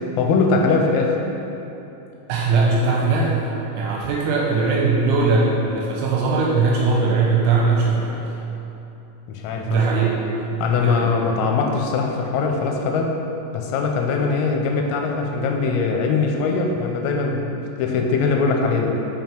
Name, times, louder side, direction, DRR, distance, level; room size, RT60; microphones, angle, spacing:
voice 1, 0.2-1.2 9.3-10.1 10.6-13.1 13.5-19.0, left 4 dB, 90° left, 2 dB, 3.4 m, -21 dB
voice 2, 2.3-8.2 9.7-11.1, right 4 dB, 80° right, -2 dB, 2.9 m, -20 dB
9.2 x 5.4 x 4.5 m, 2.9 s
omnidirectional pair, 6.0 m